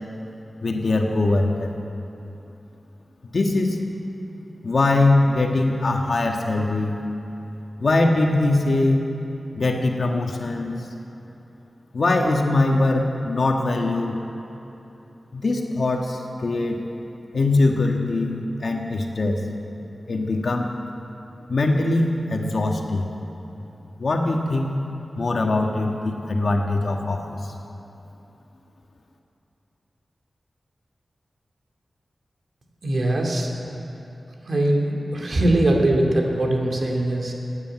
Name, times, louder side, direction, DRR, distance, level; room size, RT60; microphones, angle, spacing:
voice 1, 0.6-1.7 3.3-3.9 4.6-7.0 7.8-9.0 9.5-10.8 11.9-14.1 15.3-16.8 17.3-18.3 18.6-19.4 20.1-20.7 21.5-23.1 24.0-24.8 25.2-27.5, left 2 dB, 60° left, 2 dB, 1.7 m, -22 dB
voice 2, 32.8-33.5 34.4-37.3, right 1 dB, 60° right, 1 dB, 2.5 m, -21 dB
16.0 x 9.8 x 9.0 m, 2.9 s
wide cardioid pair, 85°, 0 cm